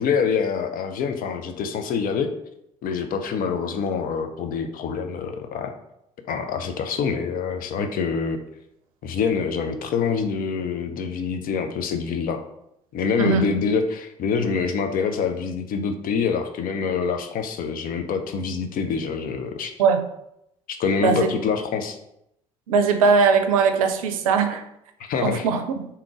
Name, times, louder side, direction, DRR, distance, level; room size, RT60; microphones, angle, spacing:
voice 1, 0.0-2.3 2.8-5.7 6.3-8.4 9.0-12.4 12.9-19.7 20.8-22.0 25.0-25.5, left 6 dB, 55° left, 7 dB, 0.6 m, -25 dB
voice 2, 21.0-21.3 22.7-24.6 25.2-25.9, right 5 dB, 80° right, 7 dB, 0.5 m, -20 dB
3.7 x 2.9 x 4.7 m, 0.80 s
hypercardioid pair, 55°, 18 cm